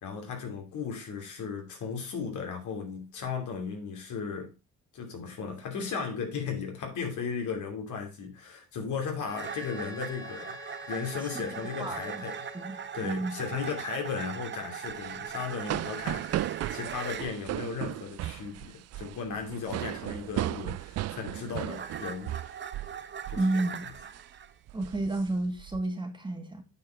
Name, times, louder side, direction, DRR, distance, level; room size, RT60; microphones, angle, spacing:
voice 1, 0.0-4.5 4.9-10.6 10.9-12.4 12.7-22.4 23.3-23.4, left 5 dB, 75° left, 2.8 m, -36 dB
Wind instrument woodwind instrument, 9.2-13.0, left 3 dB, 10° left, 1.0 m, -47 dB
sound 1, 9.3-17.3 20.7-24.5, right 7 dB, 40° right, 0.8 m, -40 dB
voice 2, 11.8-12.2 12.5-13.4 23.4-23.8 24.7-26.6, right 2 dB, 15° right, 2.0 m, -31 dB
sound 2, 14.9-23.0 23.2-23.5 23.9-24.2 24.7-25.8, right 14 dB, 55° right, 0.4 m, -36 dB
8.9 x 4.7 x 4.6 m
cardioid pair, 90°, 30 cm